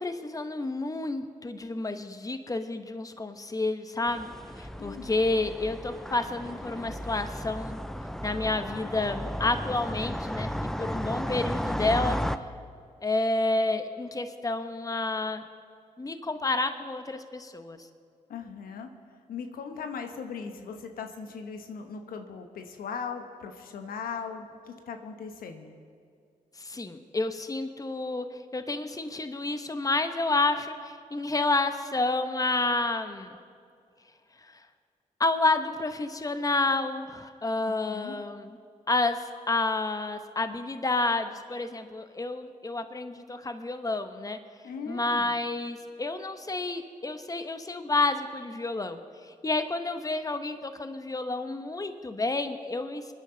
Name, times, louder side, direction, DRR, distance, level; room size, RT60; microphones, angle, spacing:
voice 1, 0.0-4.3 4.6-7.8 8.2-12.2 13.0-15.4 16.0-17.8 26.6-28.3 28.5-33.4 35.2-38.6 38.9-44.4 44.9-53.1, left 2 dB, 25° left, 8 dB, 1.0 m, -30 dB
sound 1, 4.1-12.4, equal, 5° left, 0.6 m, -34 dB
voice 2, 4.8-5.1 18.3-18.9 19.3-25.8 37.6-38.2 44.6-45.3, left 6 dB, 80° left, 6 dB, 1.1 m, -39 dB
23.0 x 10.0 x 4.0 m, 2.2 s
supercardioid pair, 50°, 15 cm